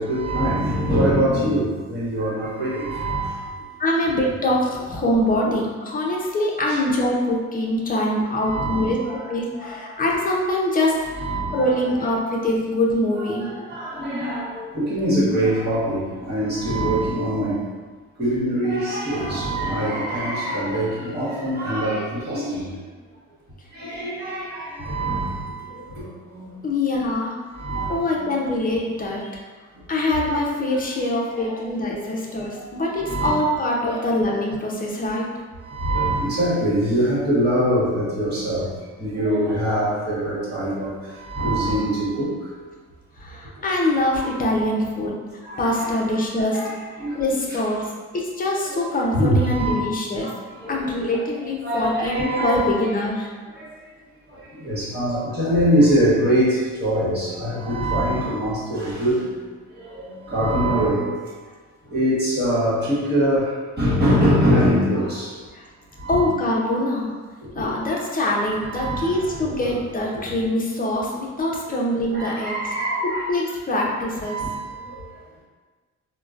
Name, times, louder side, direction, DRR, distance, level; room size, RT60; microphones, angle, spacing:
voice 1, 0.0-3.4 5.4-5.5 6.7-6.8 8.5-10.1 11.1-12.1 13.2-17.6 18.2-22.8 23.7-26.5 27.5-28.2 31.2-32.2 32.5-32.6 32.9-33.3 33.8-34.0 35.6-38.7 39.0-42.3 44.2-44.3 45.4-45.9 46.5-47.6 48.7-49.7 50.2-50.3 50.6-51.2 51.6-52.6 53.6-53.7 54.3-59.2 59.8-61.1 61.9-65.3 66.0-66.3 67.4-67.6 68.6-69.8 70.1-70.2 71.7-71.8 72.1-73.3 73.7-73.9 74.3-74.8, right 1 dB, 35° right, -7 dB, 1.3 m, -24 dB
voice 2, 3.8-9.0 9.3-11.3 11.5-13.5 26.6-27.4 27.9-29.4 29.9-35.3 40.8-40.9 41.6-41.7 43.2-45.2 45.6-50.3 50.7-53.3 55.3-55.5 65.5-65.7 66.1-67.1 67.5-72.6 73.0-74.4, left 1 dB, 30° left, -2 dB, 0.7 m, -24 dB
3.7 x 2.2 x 2.4 m, 1.4 s
cardioid pair, 90°, 30 cm